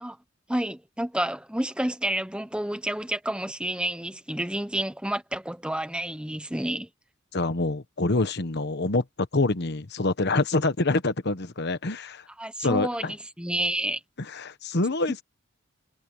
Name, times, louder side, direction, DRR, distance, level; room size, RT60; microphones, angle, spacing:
voice 1, 0.5-6.9 12.4-14.0, right 1 dB, 5° right, 1.0 m, -30 dB
voice 2, 7.3-12.2 12.6-13.1 14.3-15.2, left 2 dB, 55° left, 1.2 m, -26 dB
head